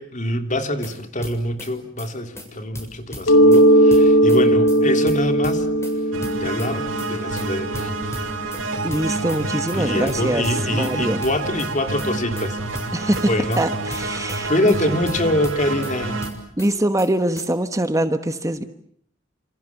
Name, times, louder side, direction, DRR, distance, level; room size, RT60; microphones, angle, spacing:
voice 1, 0.0-5.7 6.4-7.9 9.7-13.6 14.1-16.3, left 1 dB, 40° left, 6 dB, 3.1 m, -25 dB
sound 1, 0.6-0.9 1.2-1.7 2.0-2.1 2.4-2.5 2.7-3.6 3.9-4.4 4.7-4.8 5.1-5.9 6.2-6.7 7.0-7.1 7.4-7.5 7.7-8.6 8.9-9.4 9.7-9.8 10.1-10.9 11.2-11.7 12.0-12.1 12.4-12.5 12.7-13.6 13.9-14.4 14.7-14.8 15.1-15.9 16.2-16.7 17.0-17.1 17.4-17.5, left 1 dB, 15° left, 7.2 m, -36 dB
Mallet percussion, 3.3-8.8, right 1 dB, 85° left, 2.9 m, -18 dB
sound 2, 6.1-16.3, right 2 dB, 80° right, 4.9 m, -28 dB
voice 2, 8.8-11.2 12.9-14.5 14.8-15.0 16.6-18.6, right 1 dB, 15° right, 9 dB, 1.3 m, -23 dB
29.0 x 28.0 x 7.2 m, 0.65 s
head